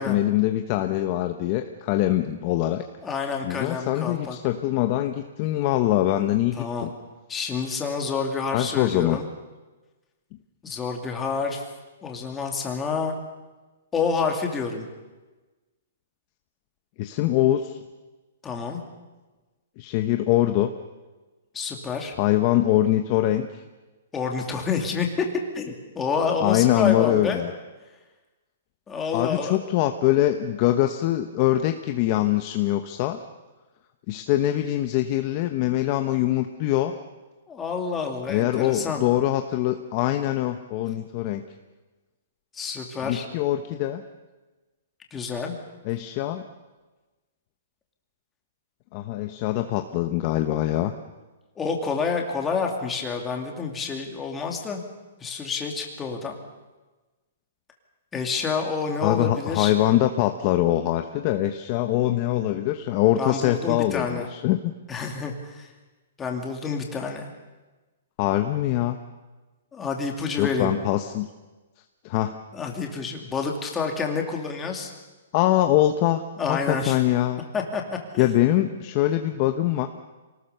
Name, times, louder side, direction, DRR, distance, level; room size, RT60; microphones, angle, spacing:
voice 1, 0.0-2.8 3.4-6.9 8.5-9.2 17.0-17.8 19.8-20.7 22.2-23.6 26.4-27.5 29.1-33.2 34.1-36.9 38.3-41.4 43.0-44.0 45.8-46.4 48.9-50.9 59.0-64.6 68.2-69.0 70.4-71.3 72.0-72.4 75.3-76.2 76.5-77.4 78.2-79.9, left 14 dB, 30° left, 7 dB, 0.9 m, -23 dB
voice 2, 3.0-4.4 6.6-6.9 7.3-9.3 10.6-11.7 12.0-13.2 13.9-14.9 18.4-18.8 21.5-22.2 24.1-25.3 25.5-27.4 28.9-29.6 37.5-39.0 42.5-43.3 45.1-45.5 51.6-54.8 55.2-56.4 58.1-59.8 63.2-64.3 64.9-65.7 66.2-67.3 69.7-70.7 72.5-74.9 76.4-77.0 77.5-78.3, left 5 dB, 10° left, 2 dB, 2.6 m, -28 dB
26.0 x 19.0 x 6.8 m, 1.2 s
hypercardioid pair, 165°, 0 cm